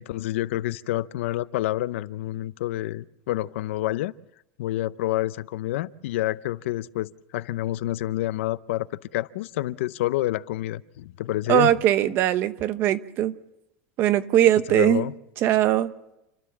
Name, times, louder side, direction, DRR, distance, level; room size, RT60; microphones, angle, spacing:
voice 1, 0.0-4.1 4.6-8.9 9.1-11.7 14.7-15.1, left 15 dB, 75° left, 0.7 m, -28 dB
voice 2, 11.5-13.3 14.0-15.1 15.4-15.9, right 12 dB, 35° right, 1.0 m, -20 dB
29.5 x 13.0 x 7.3 m
supercardioid pair, 175°, 7 cm